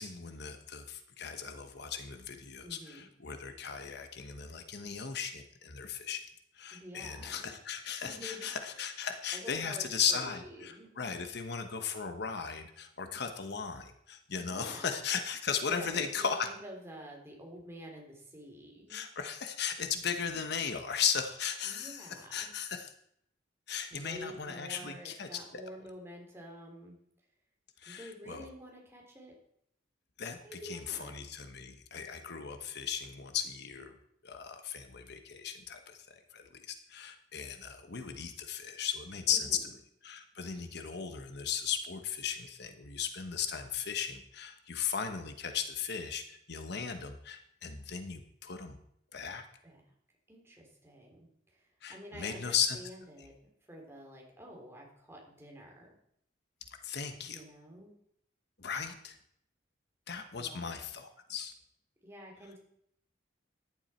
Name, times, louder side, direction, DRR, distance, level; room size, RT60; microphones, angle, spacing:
voice 1, 0.0-6.2 6.5-16.5 18.9-22.9 23.7-25.6 27.8-28.4 30.2-33.9 34.2-39.5 40.0-48.8 49.1-49.5 51.8-52.8 56.8-57.4 58.6-59.2 60.1-61.5, left 7 dB, 60° left, 7 dB, 1.1 m, -37 dB
voice 2, 2.6-3.0 6.7-7.5 8.0-8.8 9.3-9.8 10.1-11.2 14.3-15.0 15.6-19.0 21.6-22.5 23.9-27.0 27.8-29.4 30.4-31.1 39.3-39.7 49.6-49.8 50.3-53.3 53.7-55.9 57.2-57.9 60.4-60.7 62.0-62.6, equal, 15° right, -1 dB, 3.4 m, -49 dB
14.5 x 11.0 x 4.4 m, 0.72 s
head